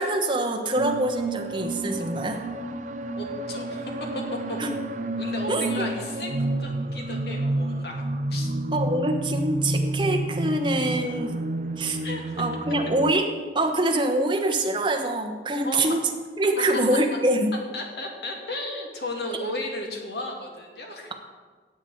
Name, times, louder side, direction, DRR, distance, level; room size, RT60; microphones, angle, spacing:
voice 1, 0.0-2.4 4.6-4.7 5.5-5.9 8.7-11.3 11.8-12.0 12.4-13.3 13.5-16.1 16.4-17.6, right 1 dB, 25° right, 3 dB, 1.2 m, -25 dB
sound 1, 0.7-13.1, right 2 dB, 45° right, 0.6 m, -30 dB
voice 2, 3.2-4.2 4.5-4.7 5.2-8.0 8.3-8.5 12.0-12.4 15.6-15.8 17.7-21.1, left 1 dB, 65° left, 1 dB, 2.2 m, -34 dB
16.0 x 8.0 x 4.8 m, 1.5 s
head